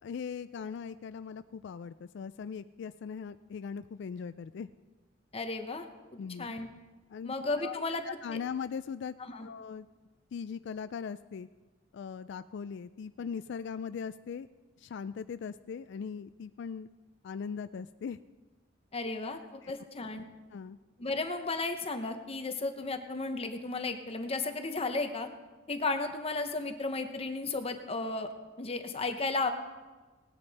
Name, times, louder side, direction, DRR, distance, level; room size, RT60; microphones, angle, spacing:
voice 1, 0.0-4.7 6.2-6.5 7.1-7.8 8.0-9.1 9.4-9.9 10.3-11.5 11.9-14.5 14.8-16.9 17.2-18.2 19.6-19.7 20.5-20.8, left 6 dB, 65° left, 13 dB, 0.3 m, -40 dB
voice 2, 5.3-5.9 6.4-6.7 7.2-8.0 8.3-8.4 9.2-9.5 18.9-20.2 21.0-25.3 25.7-28.3 28.6-29.5, left 3 dB, 30° left, 7 dB, 0.9 m, -34 dB
19.0 x 9.9 x 4.1 m, 1.3 s
head